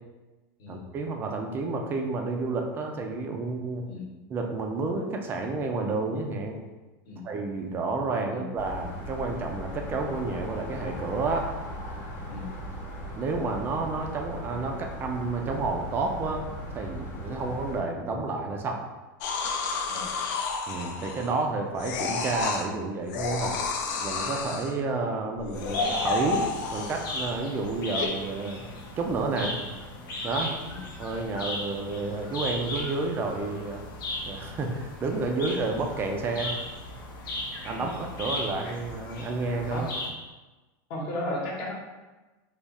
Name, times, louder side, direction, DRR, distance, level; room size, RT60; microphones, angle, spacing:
voice 1, 0.7-3.8 4.3-6.6 7.2-11.5 13.1-16.4 16.7-18.8 20.7-23.6 24.0-26.4 26.7-28.7 29.0-29.5 30.2-30.5 31.0-33.8 34.3-36.5 37.6-39.9, right 3 dB, 20° right, 3 dB, 0.4 m, -30 dB
sound 1, 8.6-17.8, equal, 20° left, 0.8 m, -38 dB
sound 2, 19.2-21.4 21.8-22.7 23.1-24.7 25.4-27.3 28.0-28.1, left 4 dB, 55° left, 0.5 m, -30 dB
sound 3, 25.5-40.1, left 1 dB, 85° left, 0.8 m, -37 dB
voice 2, 40.9-41.7, left 1 dB, 40° left, -2 dB, 1.0 m, -35 dB
3.5 x 2.4 x 4.0 m, 1.2 s
supercardioid pair, 160°, 11 cm